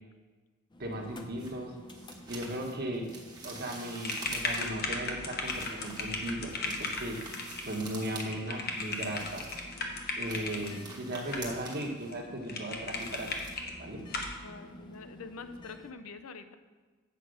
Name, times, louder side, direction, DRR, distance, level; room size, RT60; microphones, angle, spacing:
sound 1, 0.7-15.9, left 1 dB, 20° left, 0.5 m, -51 dB
voice 1, 0.8-1.7 2.3-3.1 3.4-7.2 7.6-9.4 10.2-13.3 13.8-14.0, right 1 dB, 45° right, 1 dB, 1.2 m, -37 dB
sound 2, 1.4-4.9 5.4-8.3 8.5-9.7 10.1-14.0 14.3-14.5 14.9-15.0, right 3 dB, 20° right, 1.1 m, -47 dB
sound 3, 4.0-10.7 11.3-11.8 12.1-12.2 12.5-13.7 14.1-14.4, left 3 dB, 45° left, 1.0 m, -36 dB
voice 2, 14.4-16.6, left 4 dB, 75° left, 9 dB, 0.6 m, -45 dB
8.3 x 5.0 x 6.4 m, 1.4 s
head